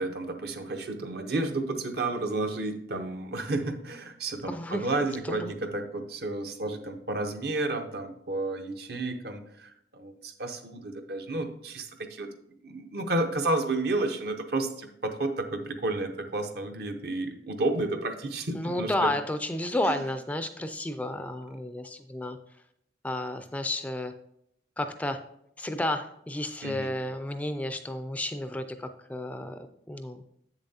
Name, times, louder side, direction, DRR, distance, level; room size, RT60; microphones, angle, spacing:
voice 1, 0.0-12.3 12.6-19.1 19.9-20.0 26.6-26.9, right 2 dB, 60° right, 6 dB, 0.8 m, -31 dB
voice 2, 4.5-4.9 5.3-5.5 18.5-22.4 23.0-24.1 24.8-25.2 25.6-30.2, left 1 dB, 10° left, 9 dB, 0.3 m, -32 dB
7.8 x 7.0 x 2.7 m, 0.74 s
head